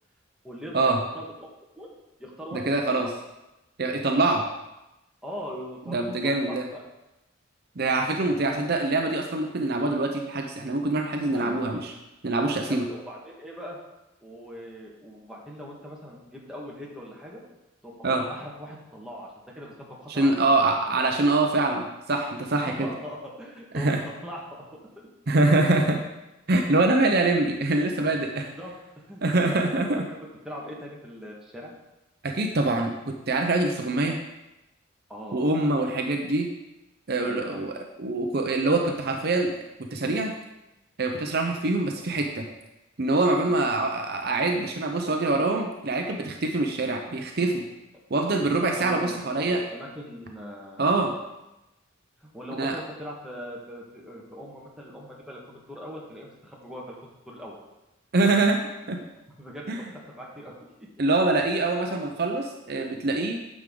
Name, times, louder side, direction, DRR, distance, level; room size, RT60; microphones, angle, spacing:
voice 1, 0.4-1.2 1.8-1.9 2.2-3.1 5.2-6.8 11.3-11.7 12.7-13.8 14.2-17.4 17.8-20.4 20.9-21.1 22.5-24.6 28.3-29.2 30.1-31.7 35.1-35.7 37.2-37.7 43.4-43.6 48.8-50.9 52.2-56.9 57.3-57.6 59.4-60.9, equal, 5° right, -4 dB, 1.5 m, -41 dB
voice 2, 2.5-3.1 3.8-4.4 5.9-6.6 7.8-11.9 12.2-12.9 18.0-18.2 20.1-22.9 23.7-24.0 25.3-26.0 26.5-28.5 29.2-30.0 32.2-34.2 35.3-36.5 37.1-39.6 39.9-40.3 41.0-42.4 43.0-47.6 48.1-49.6 50.8-51.1 52.6-52.7 58.1-58.6 58.9-59.0 59.7-59.8 61.0-63.4, right 2 dB, 50° right, 3 dB, 0.7 m, -24 dB
9.3 x 6.3 x 3.8 m, 0.96 s
head